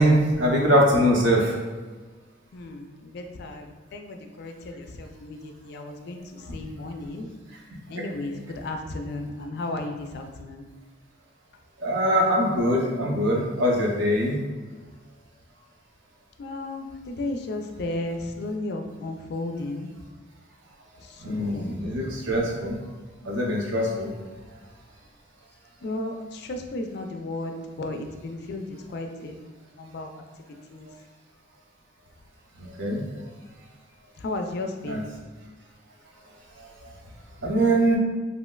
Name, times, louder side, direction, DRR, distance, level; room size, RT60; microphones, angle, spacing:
voice 1, 0.0-1.6 7.9-8.0 11.8-14.4 21.2-22.8 23.2-24.1 32.6-33.0 34.8-35.0 36.6-36.9 37.4-38.0, equal, 80° right, -1 dB, 0.6 m, -22 dB
voice 2, 2.5-7.3 7.9-10.7 16.4-19.9 21.0-22.1 25.8-30.2 30.7-30.9 34.2-35.1, left 2 dB, 55° left, 4 dB, 0.3 m, -34 dB
3.1 x 2.7 x 2.2 m, 1.3 s
head